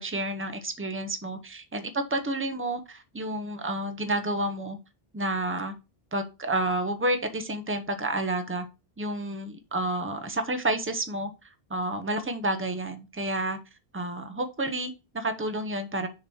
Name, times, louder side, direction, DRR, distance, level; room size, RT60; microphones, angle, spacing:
voice 1, 0.0-4.8 5.1-5.7 6.1-8.7 9.0-11.3 11.7-13.6 13.9-16.1, right 1 dB, 15° right, 0.7 m, -30 dB
6.7 x 3.0 x 5.4 m
omnidirectional pair, 1.1 m